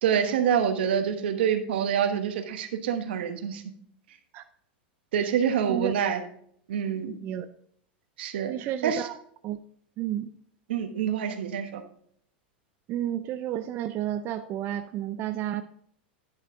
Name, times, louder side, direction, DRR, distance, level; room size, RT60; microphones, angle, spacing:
voice 1, 0.0-3.6 5.1-6.2 6.7-7.2 8.2-9.1 10.7-11.8, right 8 dB, 75° right, 8 dB, 1.2 m, -26 dB
voice 2, 8.5-9.1 9.4-9.6 10.0-10.3 12.9-15.6, right 11 dB, 40° right, 9 dB, 0.5 m, -31 dB
10.5 x 6.7 x 3.7 m, 0.64 s
hypercardioid pair, 110°, 6 cm